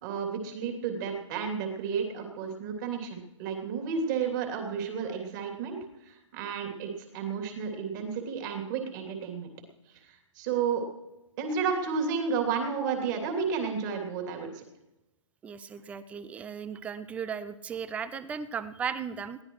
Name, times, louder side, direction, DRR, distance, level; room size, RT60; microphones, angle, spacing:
voice 1, 0.0-9.5 10.0-10.8 11.4-14.6, right 6 dB, 35° right, 3 dB, 3.0 m, -32 dB
voice 2, 15.4-19.4, right 7 dB, 10° right, 15 dB, 0.5 m, -36 dB
21.5 x 16.0 x 3.2 m, 1.0 s
hypercardioid pair, 140°, 17 cm